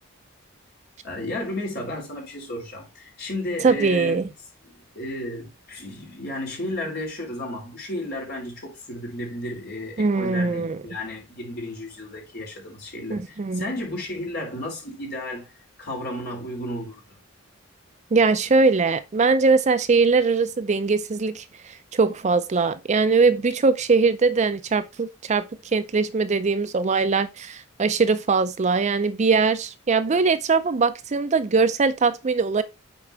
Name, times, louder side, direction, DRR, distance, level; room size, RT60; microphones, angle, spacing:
voice 1, 1.0-4.3 4.6-15.5 15.8-17.0, left 1 dB, 50° left, 3.6 m, -33 dB
voice 2, 3.6-4.2 10.0-10.8 13.1-13.6 18.1-25.4 25.7-32.6, right 4 dB, 35° right, 0.4 m, -21 dB
8.3 x 4.4 x 3.4 m
head